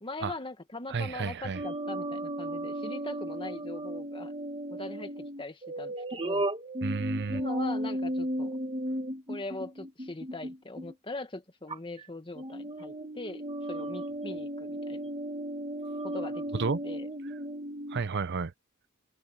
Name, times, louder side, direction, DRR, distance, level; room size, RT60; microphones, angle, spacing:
voice 1, 0.0-4.4 4.7-6.5 7.3-8.6 9.3-15.0 16.0-17.1, left 2 dB, 25° left, 1.8 m, -41 dB
voice 2, 0.9-1.6 6.8-7.4 16.6-16.8 17.9-18.5, right 4 dB, 50° right, 0.6 m, -31 dB
sound 1, 1.5-10.9 11.7-12.0 12.4-18.0, right 1 dB, 25° right, 1.8 m, -35 dB
head